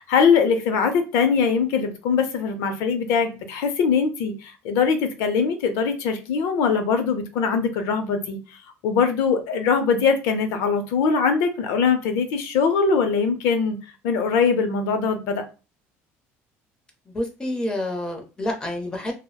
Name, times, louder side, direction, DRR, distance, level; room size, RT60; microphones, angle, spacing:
voice 1, 0.0-8.4 8.8-13.8 14.0-15.4, left 5 dB, 80° left, 7 dB, 0.5 m, -22 dB
voice 2, 17.1-19.1, left 1 dB, 15° left, 3 dB, 0.6 m, -28 dB
2.8 x 2.0 x 2.2 m, 0.31 s
cardioid pair, 145°, 5 cm